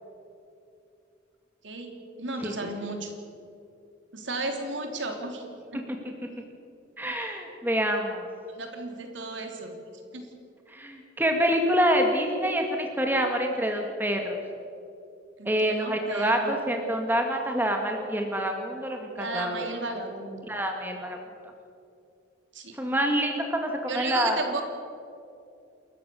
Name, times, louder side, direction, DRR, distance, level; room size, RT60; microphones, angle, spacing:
voice 1, 2.2-3.1 4.1-5.8 6.2-6.3 8.5-9.7 10.1-10.2 15.4-16.6 19.2-20.5 22.5-22.8 23.9-24.6, right 2 dB, 75° right, 4 dB, 3.3 m, -34 dB
voice 2, 7.0-8.3 10.7-14.4 15.5-19.7 20.5-21.2 22.8-24.4, equal, 10° right, 3 dB, 1.9 m, -26 dB
28.5 x 14.5 x 7.0 m, 2.6 s
head